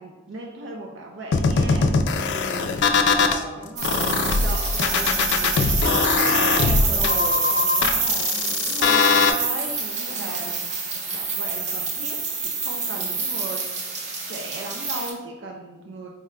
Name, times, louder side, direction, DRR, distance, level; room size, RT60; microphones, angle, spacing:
voice 1, 0.0-1.9 3.5-5.7 6.0-10.6 10.9-16.1, right 2 dB, 80° right, 1 dB, 0.4 m, -37 dB
sound 1, 1.3-3.4 3.8-9.3, left 5 dB, 70° left, 0.3 m, -21 dB
voice 2, 2.1-3.7 4.4-5.2 5.5-7.4 8.3-8.7 10.1-10.6 12.9-13.2, right 1 dB, 5° right, -5 dB, 0.6 m, -37 dB
sound 2, 3.8-15.1, right 4 dB, 40° right, 0.6 m, -27 dB
4.1 x 2.2 x 3.6 m, 1.2 s
head